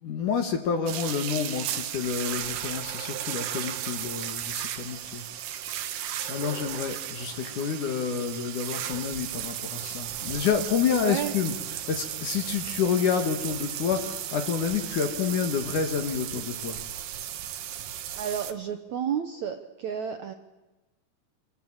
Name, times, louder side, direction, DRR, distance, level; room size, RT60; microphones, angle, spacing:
voice 1, 0.0-5.2 5.7-5.8 6.3-16.8, left 7 dB, 60° left, 6 dB, 2.9 m, -29 dB
sound 1, 0.9-18.5, right 11 dB, 90° right, 3.4 m, -35 dB
voice 2, 18.1-20.3, right 8 dB, 65° right, 6 dB, 2.0 m, -31 dB
26.5 x 20.5 x 8.9 m, 1.1 s
omnidirectional pair, 4.5 m